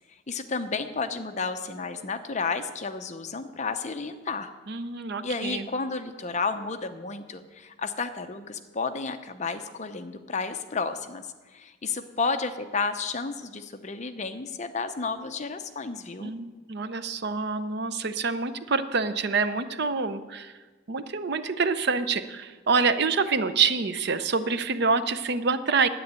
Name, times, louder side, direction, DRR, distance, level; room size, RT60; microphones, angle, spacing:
voice 1, 0.3-4.5 5.2-16.3, left 4 dB, 35° left, 8 dB, 0.7 m, -32 dB
voice 2, 4.7-5.7 16.2-20.5 20.9-25.9, right 4 dB, 50° right, 12 dB, 0.6 m, -26 dB
10.0 x 8.9 x 8.2 m, 1.3 s
head